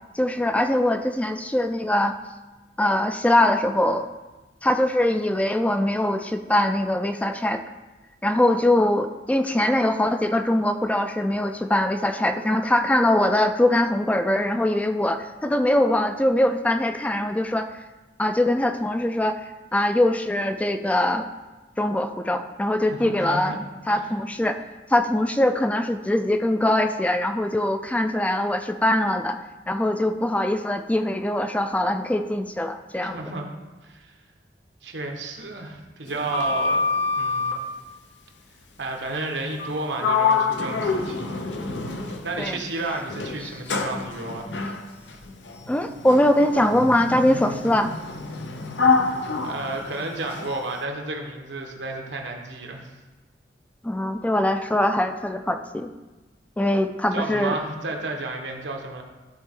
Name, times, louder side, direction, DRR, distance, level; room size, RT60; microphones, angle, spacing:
voice 1, 0.1-2.1 2.8-4.1 4.6-7.6 8.2-17.7 18.2-19.4 19.7-21.3 21.8-23.5 23.9-24.6 24.9-29.4 29.7-33.2 42.4-42.5 45.7-47.9 53.8-55.9 56.6-57.6, left 1 dB, 10° left, 7 dB, 0.3 m, -22 dB
voice 2, 22.9-23.6 23.9-24.1 33.0-33.5 33.8-34.1 34.8-36.8 37.2-37.5 38.8-41.4 42.1-44.5 49.4-52.9 57.1-59.0, right 2 dB, 85° right, 2 dB, 1.2 m, -32 dB
Sliding door, 36.1-37.7 39.5-39.7 40.0-42.5 43.1-50.6, left 4 dB, 85° left, 0.7 m, -26 dB
12.5 x 4.3 x 3.7 m, 1.2 s
head